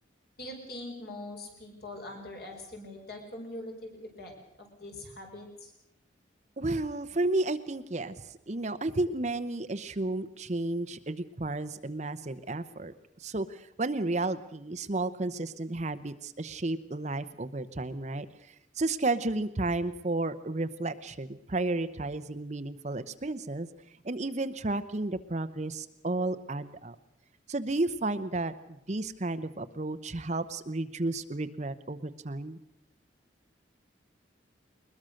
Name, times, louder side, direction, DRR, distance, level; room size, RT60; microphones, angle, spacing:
voice 1, 0.4-4.3 4.6-5.7, left 1 dB, 55° left, 2 dB, 5.3 m, -42 dB
voice 2, 6.6-12.9 13.2-23.7 24.0-27.0 27.5-32.6, right 2 dB, 35° right, 11 dB, 0.8 m, -32 dB
21.5 x 21.0 x 6.4 m, 0.81 s
head